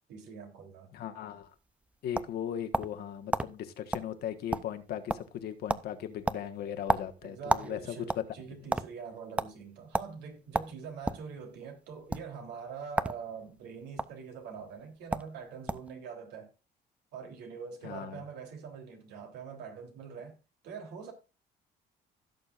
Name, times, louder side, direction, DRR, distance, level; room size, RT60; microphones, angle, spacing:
voice 1, 0.1-0.9 7.2-16.5 17.1-20.4 20.6-21.1, right 6 dB, 85° right, 3.5 m, -44 dB
voice 2, 0.9-1.5 2.0-8.2 17.8-18.2, left 9 dB, 70° left, 1.5 m, -38 dB
sound 1, 1.6-3.0 3.3-3.5 3.9-4.1 4.4-4.8 5.1-5.4 5.7-5.9 6.3-7.7 8.0-8.9 9.4-9.5 9.9-10.1 10.5-11.3 12.0-12.2 12.9-13.2 13.5-14.1 14.8-14.9 15.1-15.3 15.7-15.9, right 2 dB, 5° right, 0.5 m, -30 dB
16.5 x 6.7 x 2.5 m
cardioid pair, 110°, 17 cm